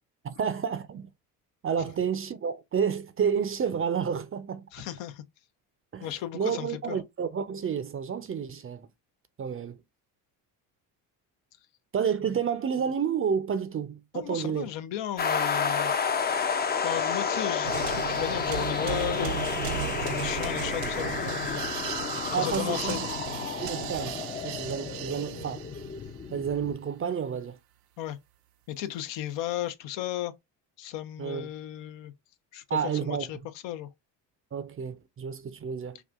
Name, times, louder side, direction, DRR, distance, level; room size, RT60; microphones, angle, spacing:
voice 1, 0.2-1.1 1.6-4.7 5.9-8.9 9.4-9.8 11.9-14.7 22.3-23.1 23.6-25.7 26.3-27.6 31.2-31.5 32.7-33.3 34.5-36.0, right 7 dB, 30° right, 0.5 m, -30 dB
voice 2, 4.7-5.2 6.0-7.0 14.1-15.9 16.8-21.6 22.3-23.0 28.0-28.2 28.7-30.3 30.8-32.1 32.5-33.4 33.6-33.9, left 12 dB, 65° left, 0.6 m, -35 dB
sound 1, 15.2-26.8, left 6 dB, 20° left, 0.5 m, -31 dB
sound 2, 17.6-26.1, right 13 dB, 75° right, 0.6 m, -36 dB
4.7 x 2.4 x 2.4 m
hypercardioid pair, 60°, 46 cm